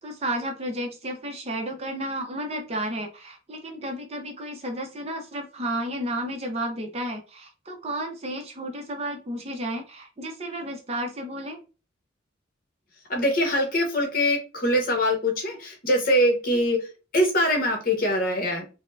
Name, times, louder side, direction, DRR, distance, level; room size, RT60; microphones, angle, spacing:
voice 1, 0.0-11.6, right 1 dB, 30° right, 4 dB, 0.6 m, -32 dB
voice 2, 13.1-16.9 17.1-18.6, equal, 45° left, 2 dB, 1.0 m, -23 dB
4.3 x 2.1 x 2.5 m, 0.33 s
head